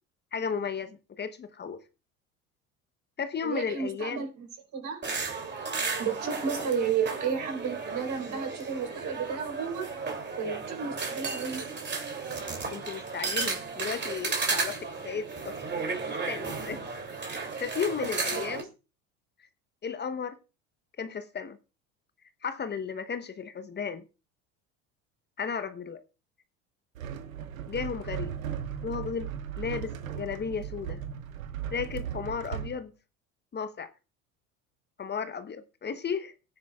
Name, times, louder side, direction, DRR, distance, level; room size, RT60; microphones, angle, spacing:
voice 1, 0.3-1.8 3.2-4.2 6.6-6.7 12.7-15.5 16.1-16.9 17.3-18.7 19.4-19.5 19.8-20.4 21.0-21.6 22.4-24.0 25.4-26.0 27.7-28.3 28.8-29.3 29.6-31.0 31.7-32.9 33.5-33.9 35.0-36.3, left 6 dB, 25° left, 0.9 m, -34 dB
voice 2, 3.4-4.5 4.7-5.0 6.0-10.0 10.4-11.7 18.3-18.6, right 6 dB, 45° right, 4.2 m, -32 dB
sound 1, 5.0-18.6, right 4 dB, 25° right, 2.8 m, -34 dB
sound 2, 27.0-32.8, right 8 dB, 85° right, 1.1 m, -37 dB
17.5 x 9.6 x 2.4 m
hypercardioid pair, 80°, 40 cm